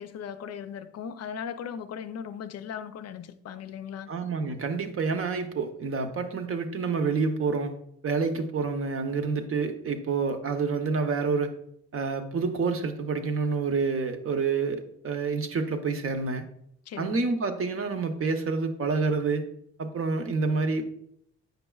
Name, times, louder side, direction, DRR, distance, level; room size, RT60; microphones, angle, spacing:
voice 1, 0.0-4.1 16.9-17.2, left 8 dB, 55° left, 0.6 m, -38 dB
voice 2, 4.1-7.7 8.0-11.5 11.9-16.5 17.0-19.4 19.8-20.8, right 4 dB, 45° right, 0.8 m, -28 dB
8.0 x 5.3 x 2.3 m
cardioid pair, 90°, 30 cm